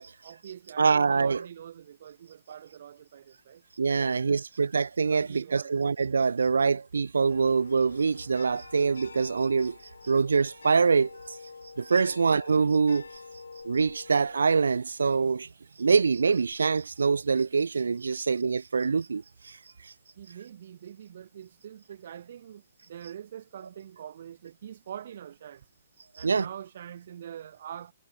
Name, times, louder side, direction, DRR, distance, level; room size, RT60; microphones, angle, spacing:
voice 1, 0.2-3.6 4.0-4.4 5.1-5.7 12.0-12.2 20.2-25.7 26.2-27.9, right 9 dB, 60° right, 2.4 m, -44 dB
voice 2, 0.8-1.5 3.8-9.8 10.0-11.4 11.8-13.2 13.6-15.5 15.8-19.9 26.2-26.5, right 5 dB, 80° right, 0.5 m, -25 dB
sound 1, 7.3-14.5, left 4 dB, 85° left, 7.2 m, -47 dB
hypercardioid pair, 130°, 0 cm